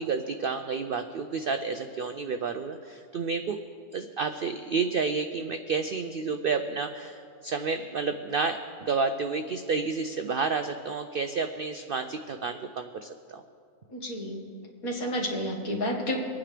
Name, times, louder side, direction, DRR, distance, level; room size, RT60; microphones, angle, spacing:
voice 1, 0.0-3.6 3.9-13.4, right 4 dB, 75° right, 8 dB, 0.5 m, -30 dB
voice 2, 13.9-14.5 14.8-16.2, equal, 75° left, 0 dB, 2.2 m, -30 dB
24.0 x 9.4 x 3.3 m, 2.4 s
omnidirectional pair, 1.5 m